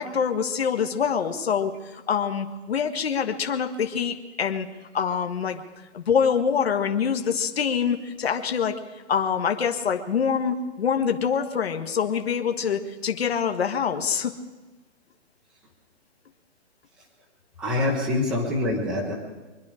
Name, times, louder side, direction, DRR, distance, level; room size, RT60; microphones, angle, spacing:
voice 1, 0.0-4.7 4.9-5.6 5.9-8.8 9.1-14.3, left 7 dB, 60° left, 6 dB, 1.6 m, -25 dB
voice 2, 17.6-19.1, left 2 dB, ahead, -4 dB, 0.8 m, -25 dB
24.5 x 10.5 x 4.9 m, 1.2 s
hypercardioid pair, 175°, 35 cm